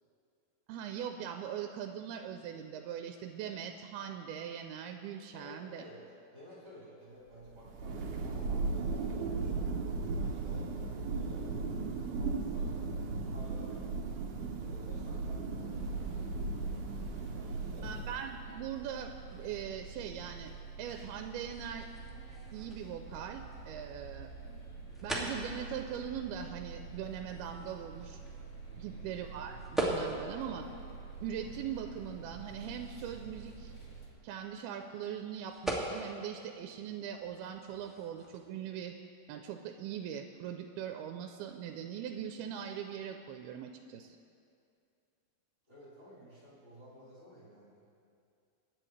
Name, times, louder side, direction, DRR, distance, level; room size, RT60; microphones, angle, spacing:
voice 1, 0.7-5.8 17.8-20.5 20.8-21.9 22.5-24.3 25.0-28.2 28.8-30.7 31.2-33.7 34.2-38.9 39.3-44.2, right 8 dB, 90° right, 5 dB, 2.5 m, -41 dB
voice 2, 5.3-6.0 6.3-9.7 10.1-10.7 11.1-13.7 14.6-16.2 17.3-17.9 28.6-29.0 45.7-47.9, equal, 30° right, -10 dB, 4.5 m, -54 dB
Thunder, 7.5-18.5, right 4 dB, 65° right, 2.2 m, -36 dB
sound 1, 15.7-34.1, right 4 dB, 40° left, 0.9 m, -48 dB
sound 2, 20.8-38.5, right 1 dB, ahead, 0.5 m, -43 dB
24.5 x 10.5 x 3.2 m, 2.4 s
omnidirectional pair, 4.4 m